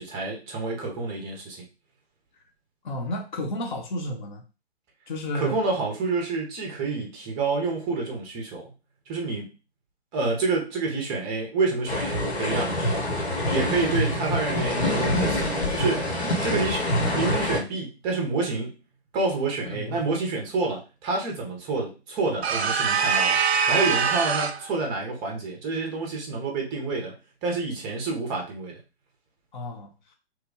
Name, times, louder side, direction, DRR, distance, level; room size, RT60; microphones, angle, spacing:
voice 1, 0.0-1.6 5.3-8.7 9.1-9.5 10.1-13.1 13.5-16.1 16.4-16.9 17.1-18.7 19.1-23.4 23.7-27.1 27.4-28.8, right 3 dB, 15° right, 1 dB, 0.6 m, -28 dB
voice 2, 2.8-4.4 5.1-5.6 7.0-7.1 19.6-20.0 29.5-29.9, left 1 dB, 45° left, 3 dB, 0.9 m, -32 dB
sound 1, 11.9-17.6, left 1 dB, 70° left, 1.3 m, -26 dB
sound 2, 22.4-24.7, right 6 dB, 70° right, 0.5 m, -23 dB
3.1 x 2.3 x 3.5 m, 0.30 s
figure-of-eight pair, 130°, 33 cm